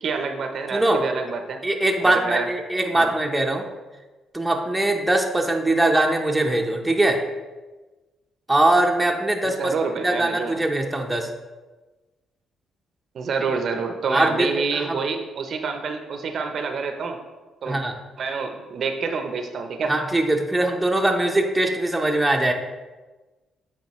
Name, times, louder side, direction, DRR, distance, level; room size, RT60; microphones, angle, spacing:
voice 1, 0.0-1.6 2.0-2.5 2.9-3.2 9.4-10.6 13.1-17.2 17.6-17.8 18.2-19.9, right 5 dB, 60° right, 5 dB, 0.7 m, -27 dB
voice 2, 0.7-1.0 1.6-3.6 4.3-7.2 8.5-11.3 14.1-15.0 17.7-18.0 19.9-22.5, right 1 dB, 5° right, 1 dB, 0.8 m, -22 dB
8.2 x 5.0 x 3.1 m, 1.2 s
cardioid pair, 90°, 0 cm